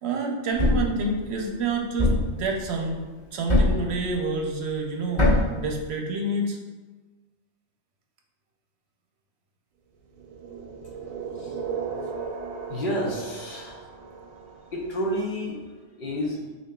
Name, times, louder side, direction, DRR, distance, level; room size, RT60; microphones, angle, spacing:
voice 1, 0.0-3.0 3.3-6.6, right 2 dB, 60° right, 1 dB, 0.8 m, -28 dB
Thump thud, 0.6-1.0 2.0-2.4 3.5-3.9 5.2-5.6, left 2 dB, 25° left, 1.1 m, -20 dB
sound 1, 10.1-15.1, right 5 dB, 85° right, 1.0 m, -36 dB
voice 2, 12.6-13.8 14.7-16.5, equal, 50° left, -1 dB, 0.7 m, -30 dB
7.0 x 2.7 x 2.2 m, 1.3 s
omnidirectional pair, 1.4 m